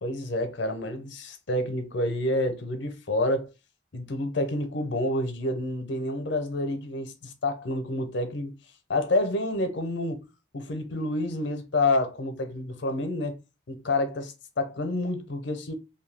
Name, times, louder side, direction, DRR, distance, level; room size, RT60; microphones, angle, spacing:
voice 1, 0.0-3.5 3.9-8.5 8.9-10.2 10.5-13.4 13.7-15.7, left 1 dB, 70° left, 0.6 m, -28 dB
2.6 x 2.2 x 3.2 m
head